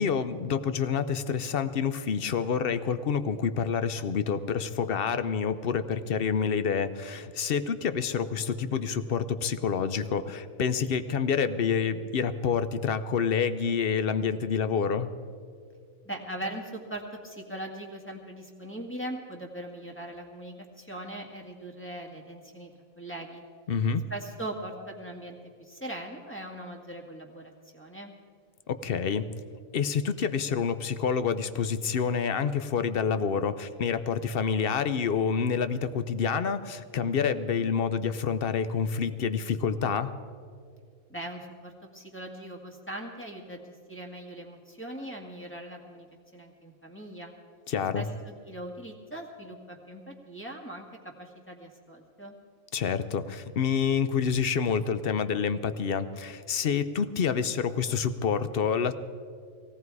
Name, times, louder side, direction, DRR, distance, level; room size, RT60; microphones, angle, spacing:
voice 1, 0.0-15.1 23.7-24.0 28.7-29.3 29.7-40.1 47.7-48.0 52.7-58.9, left 6 dB, 55° left, 12 dB, 0.8 m, -28 dB
voice 2, 16.0-22.7 23.0-23.4 24.1-28.1 41.1-47.3 47.9-52.4, right 1 dB, 10° left, 0 dB, 1.8 m, -40 dB
18.0 x 17.0 x 4.7 m, 2.2 s
omnidirectional pair, 1.3 m